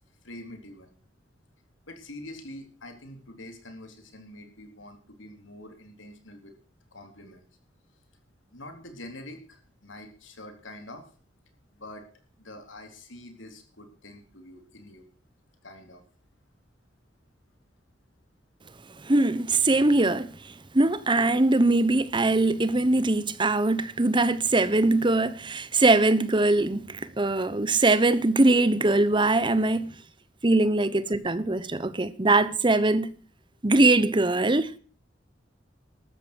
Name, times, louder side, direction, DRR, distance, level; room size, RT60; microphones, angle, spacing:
voice 1, 0.2-0.9 1.9-6.6 6.9-7.4 8.5-11.1 11.7-12.1 12.4-15.1 15.6-16.1, left 1 dB, 90° left, 3.8 m, -45 dB
voice 2, 19.0-30.0 30.4-33.1 33.6-34.8, right 2 dB, 25° right, 1.0 m, -22 dB
13.5 x 13.0 x 6.3 m
head